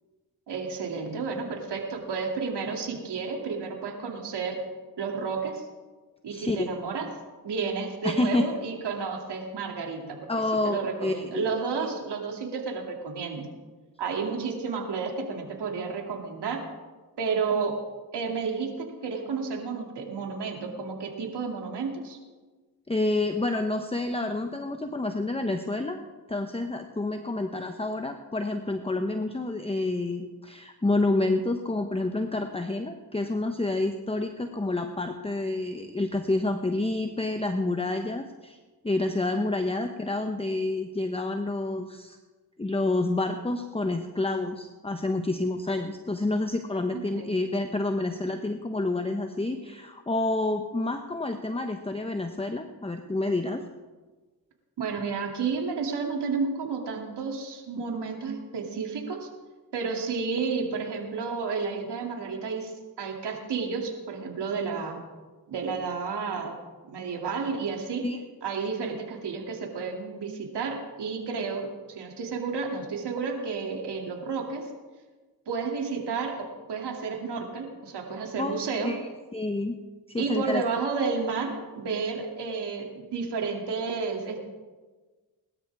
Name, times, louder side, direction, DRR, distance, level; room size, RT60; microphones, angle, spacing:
voice 1, 0.5-4.6 5.0-5.7 6.2-7.1 7.4-10.3 10.6-13.5 14.0-16.7 17.2-17.8 18.1-22.2 47.1-47.4 54.8-59.3 59.7-62.7 63.0-65.0 65.5-66.6 66.9-68.1 68.4-74.7 75.5-78.9 80.2-84.4, right 5 dB, 75° right, 1 dB, 2.8 m, -31 dB
voice 2, 6.3-6.7 8.0-8.4 10.3-11.5 22.9-26.0 26.3-38.6 38.8-42.2 42.6-53.6 68.0-68.2 78.4-79.0 79.3-79.8 80.1-80.6, left 2 dB, 15° left, 6 dB, 1.0 m, -28 dB
21.5 x 12.5 x 3.6 m, 1.3 s
cardioid pair, 55°, 41 cm